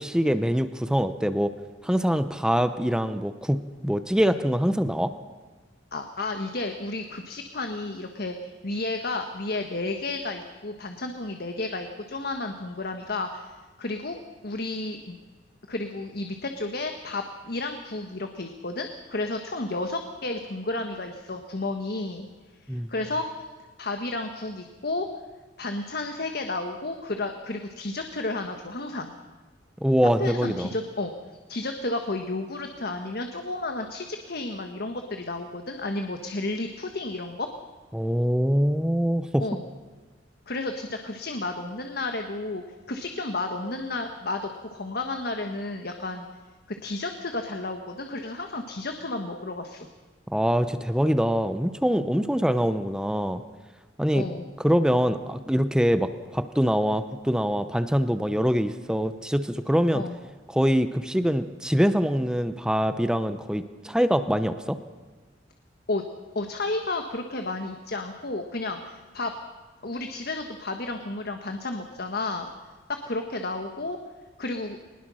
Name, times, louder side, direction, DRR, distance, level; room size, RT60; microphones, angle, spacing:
voice 1, 0.0-1.5 1.8-5.1 22.7-22.9 29.8-30.7 37.9-39.4 50.3-53.4 54.0-54.3 54.6-60.0 60.5-64.8, equal, 5° right, 10 dB, 0.7 m, -24 dB
voice 2, 5.9-15.2 15.7-22.3 22.6-23.2 23.8-25.1 25.6-29.1 30.2-31.1 31.5-37.5 39.4-39.6 40.5-46.3 46.8-49.9 54.1-54.4 59.9-60.1 65.9-66.0 66.3-69.3 69.8-72.5 73.0-74.0 74.4-74.8, left 2 dB, 55° left, 5 dB, 1.4 m, -32 dB
21.5 x 20.0 x 6.3 m, 1.3 s
head